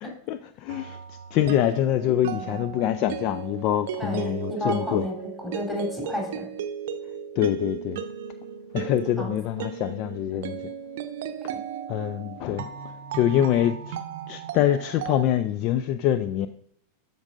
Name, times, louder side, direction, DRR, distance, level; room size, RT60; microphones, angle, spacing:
voice 1, 0.0-1.0 1.3-5.1 7.4-8.0 8.7-10.6 11.9-12.7 13.1-14.0 14.3-16.5, left 11 dB, 40° left, 0.3 m, -25 dB
sound 1, 0.7-15.2, right 8 dB, 55° right, 0.6 m, -36 dB
voice 2, 4.0-6.5 9.2-9.3 10.3-10.6 11.5-11.6, left 1 dB, 10° left, 3.2 m, -32 dB
13.0 x 5.3 x 2.5 m
figure-of-eight pair, 90°, 0 cm